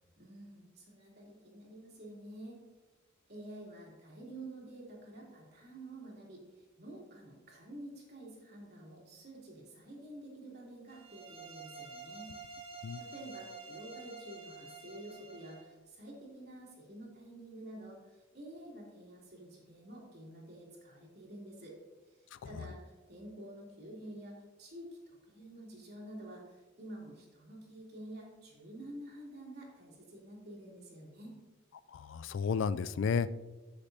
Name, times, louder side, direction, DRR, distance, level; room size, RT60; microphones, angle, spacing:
voice 1, 0.2-2.6 3.3-12.3 12.7-21.8 22.1-31.4, right 1 dB, 50° right, -3 dB, 3.0 m, -49 dB
sound 1, 10.9-15.7, right 4 dB, 30° right, 1.1 m, -49 dB
voice 2, 31.9-33.3, left 6 dB, 60° left, 15 dB, 0.3 m, -32 dB
13.5 x 6.7 x 2.8 m, 1.2 s
head